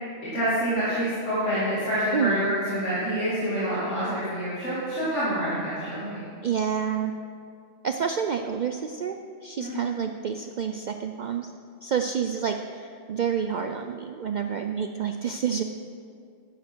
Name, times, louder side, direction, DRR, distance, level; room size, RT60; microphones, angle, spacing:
voice 1, 0.2-6.2 9.6-9.8, equal, 65° left, -11 dB, 3.0 m, -27 dB
voice 2, 2.1-2.5 6.4-7.1 7.8-11.5 11.8-15.6, right 7 dB, 80° right, 6 dB, 0.4 m, -29 dB
12.5 x 10.0 x 4.5 m, 2.4 s
omnidirectional pair, 1.4 m